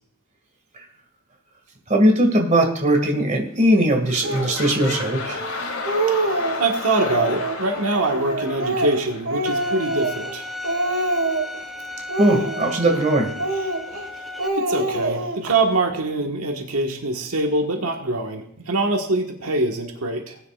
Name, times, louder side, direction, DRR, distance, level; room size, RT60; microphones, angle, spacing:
voice 1, 1.9-5.4 12.2-13.3, right 1 dB, 35° right, 3 dB, 2.1 m, -19 dB
sound 1, 3.5-3.7 4.0-9.8 10.5-10.6, left 3 dB, 70° left, 2.5 m, -32 dB
Speech, 4.2-4.6 5.3-5.4 5.7-6.6 7.0-7.6 8.1-10.4 10.6-11.6 12.1-13.0 13.4-14.1 14.4-15.6, right 2 dB, 65° right, 1.7 m, -25 dB
voice 2, 6.6-10.5 14.5-20.4, right 2 dB, 85° right, 2 dB, 1.6 m, -24 dB
Bowed string instrument, 9.5-14.5, left 2 dB, ahead, 0.8 m, -35 dB
19.5 x 9.8 x 2.5 m, 0.71 s
head